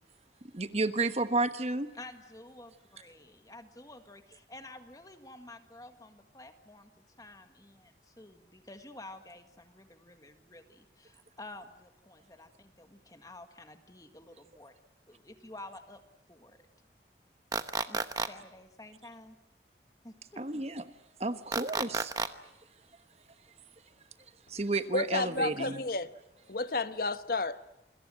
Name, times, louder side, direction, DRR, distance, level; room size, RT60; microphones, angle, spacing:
voice 1, 0.4-1.9 20.4-20.8 21.2-22.1 24.5-25.8, right 2 dB, 35° right, 1.2 m, -31 dB
voice 2, 1.9-6.9 7.2-14.7 15.1-16.0 16.3-16.6 17.9-19.3 20.0-20.4, left 2 dB, 20° left, 1.7 m, -50 dB
sound 1, 17.5-18.3 21.5-22.3, right 4 dB, 20° right, 1.0 m, -31 dB
voice 3, 24.9-26.1 26.5-27.6, left 2 dB, 55° left, 1.2 m, -31 dB
28.0 x 22.0 x 7.7 m
head